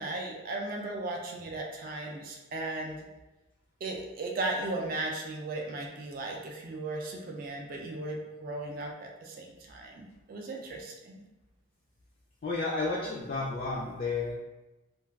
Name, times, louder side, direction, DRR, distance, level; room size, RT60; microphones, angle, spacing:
voice 1, 0.0-3.1 3.8-11.2, right 2 dB, 45° right, 0 dB, 0.3 m, -36 dB
voice 2, 12.4-14.3, left 3 dB, 45° left, -4 dB, 0.3 m, -32 dB
2.3 x 2.2 x 3.3 m, 1.1 s
head